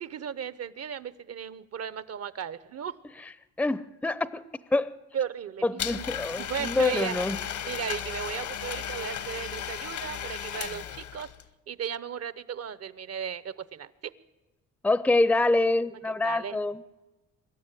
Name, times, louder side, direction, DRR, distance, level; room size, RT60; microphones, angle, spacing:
voice 1, 0.0-2.9 5.1-6.1 6.4-11.3 11.7-14.1 16.0-16.6, right 8 dB, 55° right, 1.0 m, -36 dB
voice 2, 3.6-4.4 4.7-4.9 5.6-7.4 14.8-16.8, left 2 dB, 5° left, 0.6 m, -25 dB
Domestic sounds home sounds, 5.8-11.4, left 9 dB, 70° left, 1.2 m, -35 dB
24.5 x 13.0 x 9.1 m
cardioid pair, 90°, 30 cm